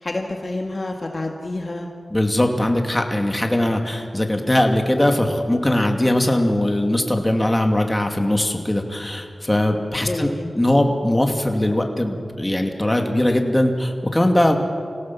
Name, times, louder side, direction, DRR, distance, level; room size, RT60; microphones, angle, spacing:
voice 1, 0.0-1.9 10.0-10.5, left 2 dB, 40° left, 2 dB, 1.8 m, -28 dB
voice 2, 2.1-10.3 10.5-14.6, left 1 dB, 15° left, 3 dB, 2.5 m, -20 dB
26.0 x 17.0 x 7.2 m, 2.3 s
wide cardioid pair, 60°, 0 cm